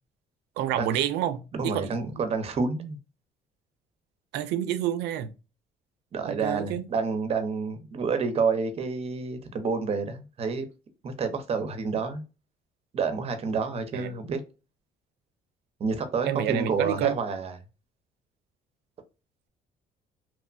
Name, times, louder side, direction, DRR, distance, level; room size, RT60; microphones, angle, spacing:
voice 1, 0.6-1.9 4.3-5.3 6.2-6.9 13.9-14.1 16.2-17.1, right 11 dB, 85° right, 0.4 m, -28 dB
voice 2, 1.5-3.0 6.1-10.7 11.0-12.2 12.9-14.4 15.8-17.5, right 4 dB, 35° right, 0.6 m, -29 dB
3.0 x 2.1 x 2.4 m
cardioid pair, 110°, 17 cm